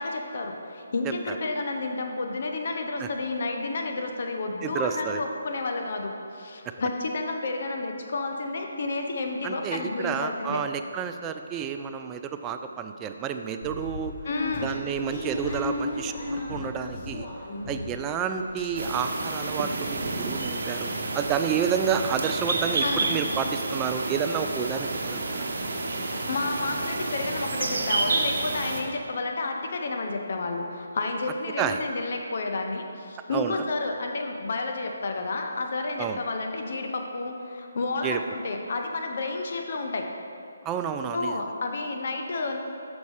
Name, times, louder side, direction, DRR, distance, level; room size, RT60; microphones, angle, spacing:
voice 1, 0.0-10.6 14.2-14.7 22.8-23.1 26.1-40.1 41.1-42.6, left 3 dB, 55° left, 3 dB, 0.8 m, -31 dB
voice 2, 4.6-5.2 6.7-6.8 9.4-14.1 14.6-17.3 17.7-25.4 31.6-31.8 33.3-33.6 36.0-36.2 38.0-38.2 40.6-41.4, right 7 dB, 15° right, 7 dB, 0.3 m, -30 dB
sound 1, 13.6-18.1 18.4-19.2 19.6-19.7 19.9-20.1, left 2 dB, 35° left, 1.2 m, -35 dB
Forest ambient midday, 18.8-28.8, right 3 dB, 60° right, 0.9 m, -30 dB
7.1 x 5.2 x 4.8 m, 2.6 s
hypercardioid pair, 155°, 0 cm